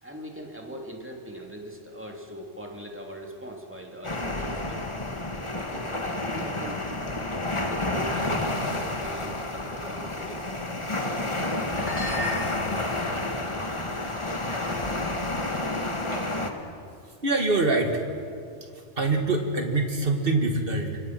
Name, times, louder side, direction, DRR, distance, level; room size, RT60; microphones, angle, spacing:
voice 1, 0.0-4.9 5.7-6.8 7.6-10.5, equal, 10° right, 1 dB, 2.6 m, -40 dB
sound 1, 4.0-16.5, left 2 dB, 25° left, 1.6 m, -30 dB
sound 2, 11.7-12.9 13.5-13.9 14.5-14.7 15.0-15.2 16.1-16.6, left 1 dB, 90° left, 5.1 m, -36 dB
voice 2, 17.2-18.0 19.0-21.0, right 3 dB, 50° right, 4 dB, 2.4 m, -24 dB
27.0 x 23.5 x 6.0 m, 2.3 s
omnidirectional pair, 1.2 m